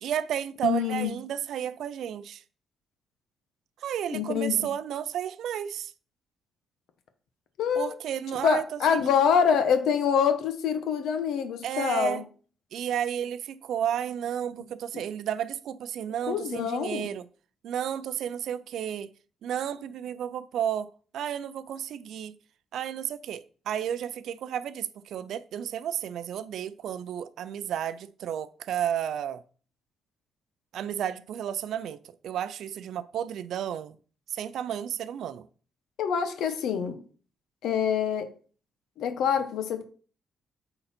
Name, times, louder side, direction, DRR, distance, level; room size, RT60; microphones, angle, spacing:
voice 1, 0.0-2.4 3.8-5.9 7.8-8.6 8.9-9.1 11.6-12.3 12.7-17.2 17.6-19.1 19.4-22.3 22.7-29.4 30.7-34.0 34.3-35.5, right 9 dB, 75° right, 0.4 m, -32 dB
voice 2, 0.6-1.1 4.1-4.7 7.6-7.9 8.4-12.2 16.3-17.1 36.0-37.0 37.6-38.3 39.0-39.9, left 7 dB, 80° left, 0.9 m, -25 dB
8.6 x 3.9 x 4.3 m
cardioid pair, 130°, 0 cm